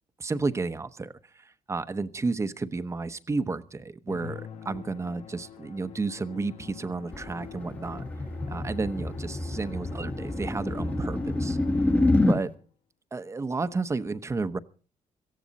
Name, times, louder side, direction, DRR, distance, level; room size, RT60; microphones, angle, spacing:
voice 1, 0.2-8.0 8.5-11.6 12.3-12.5 13.1-14.6, right 3 dB, 25° right, 12 dB, 0.9 m, -32 dB
Musical instrument, 4.1-12.6, left 9 dB, 60° left, 1.3 m, -45 dB
sound 1, 7.1-12.4, left 2 dB, 10° left, 1.1 m, -27 dB
18.0 x 14.5 x 4.1 m, 0.38 s
cardioid pair, 115°, 12 cm